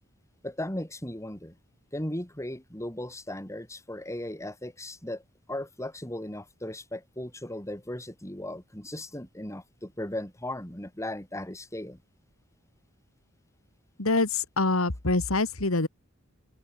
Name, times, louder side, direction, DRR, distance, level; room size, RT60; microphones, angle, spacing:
voice 1, 0.4-1.5 1.9-5.2 5.5-12.0, left 1 dB, 15° left, 5.4 m, -37 dB
voice 2, 14.0-15.9, left 2 dB, 75° left, 2.2 m, -25 dB
head